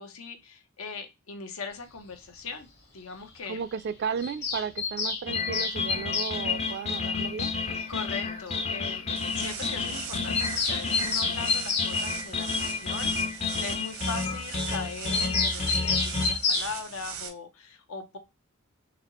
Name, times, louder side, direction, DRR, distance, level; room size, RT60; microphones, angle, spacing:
voice 1, 0.0-2.7 2.9-3.6 7.9-18.2, left 4 dB, 80° left, 0.8 m, -40 dB
voice 2, 3.5-7.5, right 6 dB, 55° right, 0.3 m, -34 dB
Bird vocalization bird call bird song, 4.2-6.4 7.8-7.9 8.1-8.2 8.5-8.6 8.9-9.0 9.2-9.3 9.6-9.7 10.0-11.9 15.1-16.7, left 4 dB, 50° left, 1.2 m, -28 dB
sound 1, 5.3-16.3, left 4 dB, 30° left, 0.5 m, -31 dB
sound 2, 9.2-17.3, right 7 dB, 90° right, 0.8 m, -40 dB
4.0 x 2.8 x 2.9 m
head